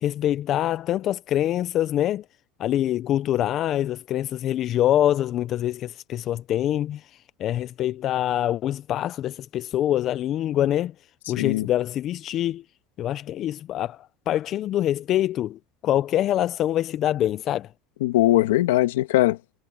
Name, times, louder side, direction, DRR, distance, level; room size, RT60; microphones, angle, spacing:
voice 1, 0.0-2.2 2.6-10.9 11.3-12.6 13.0-17.7, left 12 dB, 50° left, 0.6 m, -25 dB
voice 2, 11.4-11.7 18.0-19.6, left 15 dB, 90° left, 1.7 m, -21 dB
supercardioid pair, 105°, 0 cm